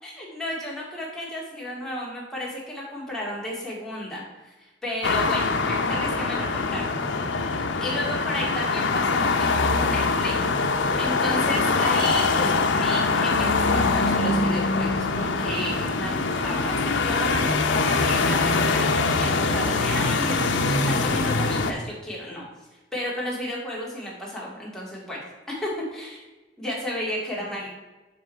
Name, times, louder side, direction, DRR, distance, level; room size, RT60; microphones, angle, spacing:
voice 1, 0.0-7.2 7.8-10.5 11.0-22.4 22.9-25.2 25.5-26.2 26.6-27.7, left 1 dB, 5° left, -5 dB, 2.2 m, -33 dB
sound 1, 5.0-21.7, left 3 dB, 85° left, 0.7 m, -23 dB
7.0 x 5.6 x 4.5 m, 1.1 s
head